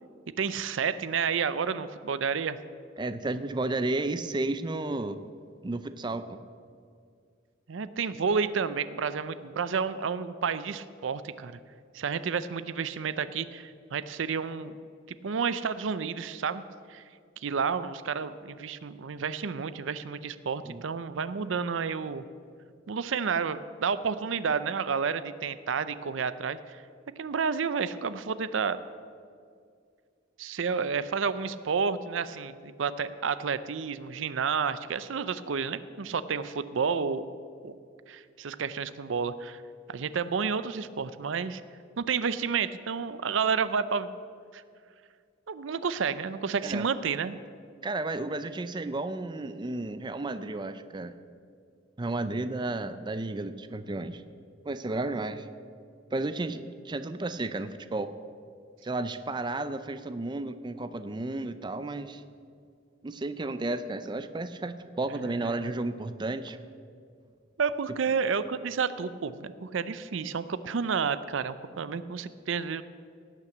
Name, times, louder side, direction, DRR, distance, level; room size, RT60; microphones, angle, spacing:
voice 1, 0.4-2.6 7.7-11.6 11.9-14.7 15.1-16.6 16.9-17.0 17.4-22.2 22.9-26.8 27.2-28.8 30.4-37.3 37.6-37.7 38.1-39.6 39.9-41.6 42.0-44.1 44.5-44.6 45.5-47.4 65.1-65.7 67.6-72.8, right 6 dB, 75° right, 14 dB, 0.5 m, -30 dB
voice 2, 3.0-5.2 5.6-6.4 20.6-20.8 46.6-46.9 47.8-51.2 52.0-54.2 54.7-55.5 56.1-58.1 58.8-62.2 63.0-66.6, right 2 dB, 25° right, 11 dB, 0.5 m, -32 dB
18.0 x 6.0 x 7.8 m, 2.2 s
head